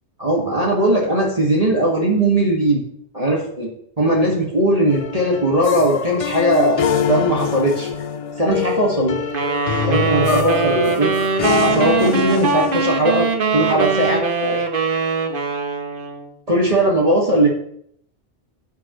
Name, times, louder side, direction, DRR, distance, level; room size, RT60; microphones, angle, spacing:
voice 1, 0.2-2.8 3.1-3.7 4.0-6.8 7.1-7.9 8.4-9.2 9.8-11.1 11.6-14.6 16.5-17.5, right 1 dB, 30° right, -4 dB, 2.2 m, -18 dB
sound 1, 4.9-12.8, left 7 dB, 50° left, 0.4 m, -24 dB
sound 2, 9.3-16.3, right 4 dB, 50° right, 1.2 m, -21 dB
11.5 x 9.2 x 3.2 m, 0.67 s
omnidirectional pair, 1.2 m